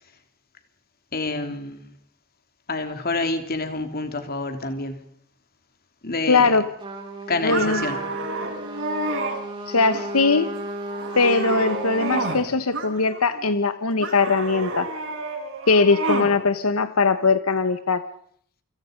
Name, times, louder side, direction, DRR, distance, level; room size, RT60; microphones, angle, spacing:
voice 1, 1.1-1.9 2.7-5.0 6.0-6.6 7.3-8.0, left 3 dB, 45° left, 3.2 m, -28 dB
voice 2, 6.3-6.7 7.4-7.9 9.7-10.5 11.2-14.9 15.7-18.0, left 4 dB, 85° left, 1.2 m, -20 dB
Trumpet, 6.8-12.4, right 1 dB, 25° right, 5.8 m, -34 dB
sound 1, 7.5-9.4 9.9-10.4 10.8-12.4 12.7-13.4 14.0-16.3, right 2 dB, 60° right, 7.3 m, -30 dB
28.5 x 26.0 x 5.3 m
head